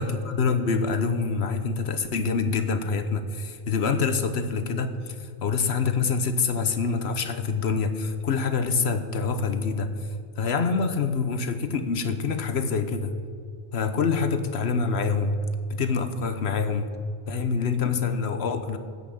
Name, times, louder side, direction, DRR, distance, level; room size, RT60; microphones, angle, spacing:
voice 1, 0.0-9.9 10.4-13.1 13.7-15.4 15.7-16.9 17.3-18.8, left 5 dB, 70° left, 9 dB, 1.1 m, -26 dB
13.5 x 5.8 x 8.7 m, 2.3 s
omnidirectional pair, 1.1 m